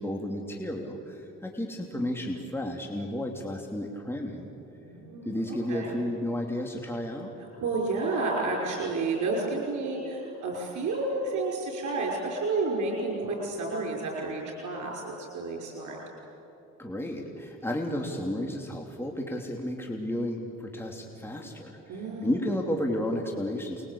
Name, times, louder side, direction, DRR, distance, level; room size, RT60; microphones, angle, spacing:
voice 1, 0.0-4.5 5.2-7.3 16.8-23.9, left 1 dB, 10° left, 1 dB, 2.9 m, -32 dB
voice 2, 4.8-5.4 5.7-5.9 7.4-16.0 21.9-22.3, right 3 dB, 70° right, -1 dB, 5.8 m, -31 dB
29.0 x 22.0 x 8.6 m, 3.0 s
cardioid pair, 90°, 30 cm